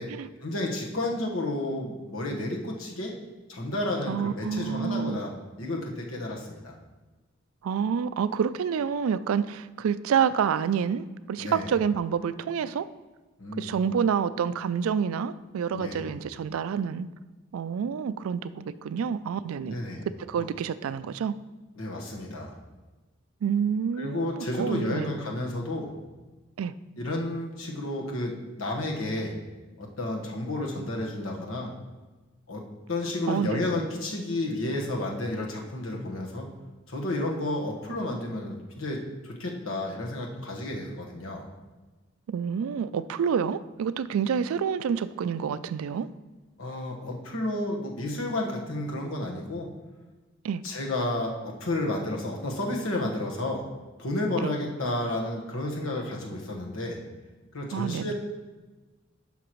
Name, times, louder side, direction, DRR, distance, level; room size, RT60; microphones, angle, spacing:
voice 1, 0.4-3.1 3.5-5.3 5.6-6.7 11.4-11.7 13.4-13.7 15.7-16.1 19.6-20.0 21.8-22.5 24.0-25.9 27.0-29.3 29.8-31.7 32.5-32.6 32.9-36.5 36.9-41.4 46.6-49.7 50.6-53.6 54.0-57.0 57.5-58.1, left 1 dB, 90° left, 0 dB, 1.4 m, -31 dB
voice 2, 4.1-5.2 7.6-12.9 13.6-17.1 17.5-19.8 20.1-21.4 23.4-25.1 26.6-26.7 33.3-33.6 42.3-46.1 50.4-50.6 54.4-54.5 57.7-58.1, right 7 dB, 90° right, 15 dB, 0.3 m, -28 dB
11.0 x 5.8 x 3.1 m, 1.2 s
head